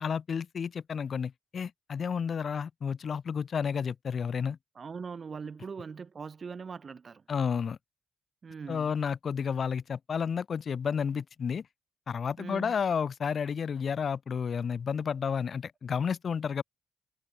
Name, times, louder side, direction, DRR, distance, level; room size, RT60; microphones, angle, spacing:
voice 1, 0.0-4.6 7.3-7.8 8.7-11.7 12.1-16.6, left 6 dB, 60° left, 0.5 m, -31 dB
voice 2, 4.8-7.2 8.4-8.9 12.4-12.7, right 5 dB, 50° right, 2.5 m, -41 dB
supercardioid pair, 50°, 0 cm